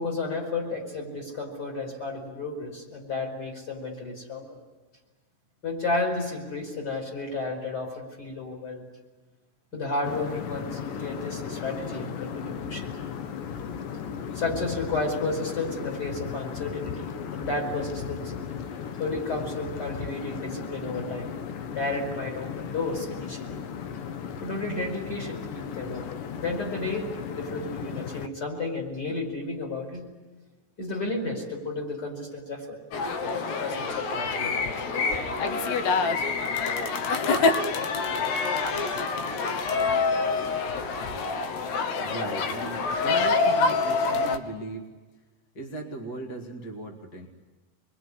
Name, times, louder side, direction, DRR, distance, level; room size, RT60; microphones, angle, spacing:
voice 1, 0.0-4.6 5.6-8.8 9.7-12.9 14.3-18.3 19.0-21.3 21.7-23.6 24.4-26.0 26.3-30.1 30.8-32.8 33.2-34.7, left 2 dB, 20° left, 1 dB, 5.2 m, -32 dB
sound 1, 10.0-28.3, left 7 dB, 85° left, 1.9 m, -36 dB
sound 2, 32.9-44.4, left 4 dB, 70° left, 3.2 m, -26 dB
voice 2, 42.0-44.9 45.5-47.3, right 1 dB, 55° left, 2 dB, 1.1 m, -37 dB
26.5 x 22.0 x 9.8 m, 1.3 s
omnidirectional pair, 5.5 m